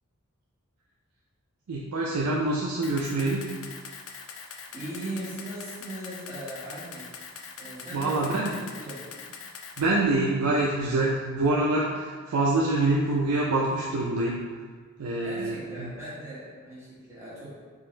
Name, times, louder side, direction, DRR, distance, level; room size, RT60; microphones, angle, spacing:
voice 1, 1.7-3.5 7.9-8.5 9.8-14.4 15.0-15.9, right 2 dB, 85° right, -3 dB, 0.4 m, -25 dB
Camera, 2.8-9.8, left 6 dB, 60° left, 0.4 m, -43 dB
voice 2, 4.7-7.1 7.6-9.1 15.2-17.5, right 1 dB, 10° right, -10 dB, 1.4 m, -39 dB
3.9 x 2.5 x 3.8 m, 1.5 s
head